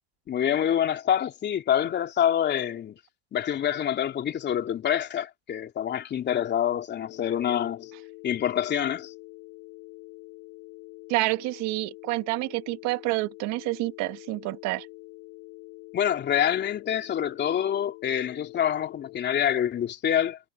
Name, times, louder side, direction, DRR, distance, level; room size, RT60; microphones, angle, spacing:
voice 1, 0.3-3.0 3.3-7.9 8.2-9.1 15.9-20.4, left 10 dB, 30° left, 3.2 m, -26 dB
Telephone, 7.0-19.2, left 27 dB, 55° left, 3.5 m, -46 dB
voice 2, 11.1-14.9, right 22 dB, 50° right, 1.9 m, -28 dB
supercardioid pair, 115°, 34 cm